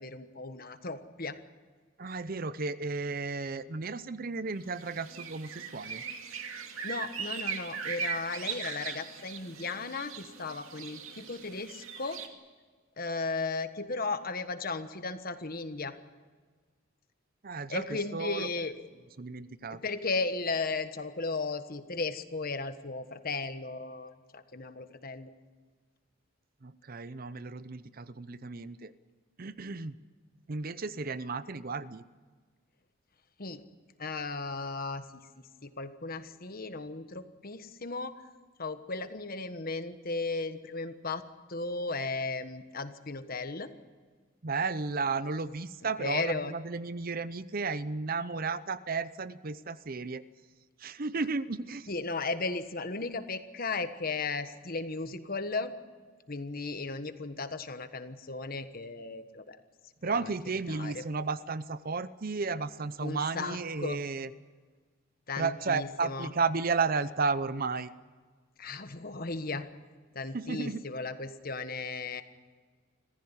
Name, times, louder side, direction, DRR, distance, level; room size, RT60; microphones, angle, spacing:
voice 1, 0.0-1.4 6.8-12.2 13.0-15.9 17.7-18.9 19.7-25.3 33.4-33.6 34.0-35.0 35.6-38.1 38.6-41.2 41.5-43.7 46.0-46.5 51.9-55.7 56.3-59.6 60.1-60.3 60.7-61.0 63.0-64.0 65.3-66.3 68.6-69.7 70.1-72.2, left 3 dB, 45° left, 10 dB, 1.3 m, -35 dB
voice 2, 2.0-6.0 17.4-18.5 19.2-19.8 26.6-28.9 29.4-29.9 30.5-32.0 44.4-50.2 50.8-51.9 60.0-64.3 65.4-67.9 70.3-70.8, right 4 dB, 45° right, 15 dB, 0.7 m, -33 dB
sound 1, 4.7-12.3, right 6 dB, 80° right, 2.4 m, -39 dB
26.0 x 15.5 x 9.9 m, 1.5 s
head